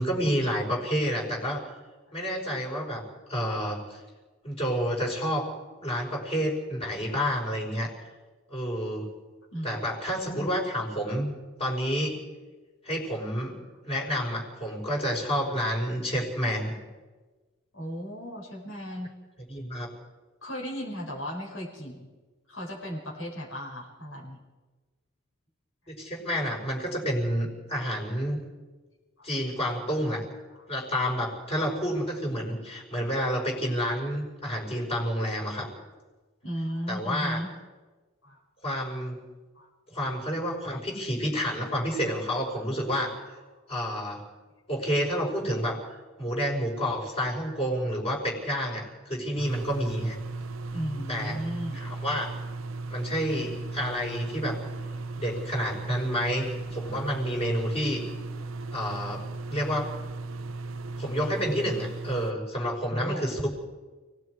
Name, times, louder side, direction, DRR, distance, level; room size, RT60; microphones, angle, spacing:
voice 1, 0.0-1.6 2.1-3.0 3.3-4.0 4.4-5.4 5.8-7.9 8.5-9.1 9.6-11.3 11.6-12.2 12.8-13.6 13.9-16.7 19.5-19.9 25.9-28.4 29.2-30.2 30.7-35.7 36.9-37.4 38.6-39.2 39.9-43.1 43.7-44.2 44.7-45.8 46.2-50.2 51.1-51.4 51.7-52.3 52.9-54.6 55.2-58.0 58.7-59.9 61.0-63.5, equal, 30° left, 0 dB, 5.3 m, -29 dB
voice 2, 17.7-19.1 20.4-22.1 22.5-24.4 29.2-29.3 36.4-37.5 38.2-38.4 39.5-39.7 50.7-51.8 62.9-63.3, equal, 80° left, -4 dB, 6.1 m, -35 dB
sound 1, 49.4-62.3, right 3 dB, 90° right, 0.9 m, -36 dB
29.5 x 19.0 x 4.9 m, 1.3 s
head